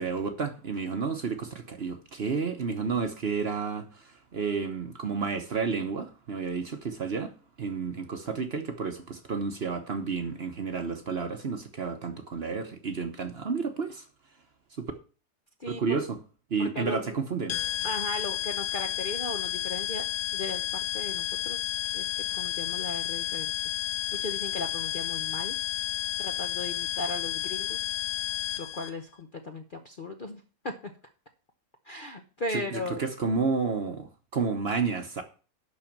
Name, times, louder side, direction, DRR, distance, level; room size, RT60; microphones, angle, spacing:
voice 1, 0.0-7.3 7.6-14.0 14.8-14.9 15.7-16.2 16.5-17.5 32.5-35.2, right 5 dB, 45° right, 1.0 m, -31 dB
voice 2, 15.6-16.0 16.6-17.1 17.8-20.1 20.3-23.5 24.2-25.5 26.2-27.8 28.6-30.9 31.9-33.0, left 2 dB, 40° left, 0.7 m, -37 dB
sound 1, 17.5-28.9, left 13 dB, 65° left, 1.2 m, -31 dB
11.0 x 4.2 x 7.2 m
omnidirectional pair, 1.8 m